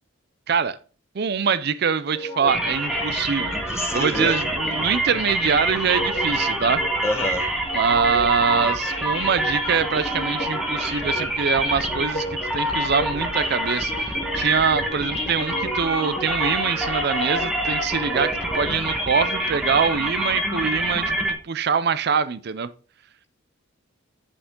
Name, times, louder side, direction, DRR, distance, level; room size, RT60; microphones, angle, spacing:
voice 1, 0.5-0.8 1.2-6.8 7.7-12.3 12.5-22.7, right 6 dB, 55° right, 0.5 m, -24 dB
sound 1, 2.1-20.0, equal, 30° left, 3.4 m, -34 dB
sound 2, 2.5-21.3, right 1 dB, ahead, 1.5 m, -26 dB
voice 2, 3.5-4.3 4.6-4.7 7.0-7.6, left 1 dB, 15° left, 1.2 m, -28 dB
8.8 x 7.0 x 3.7 m
head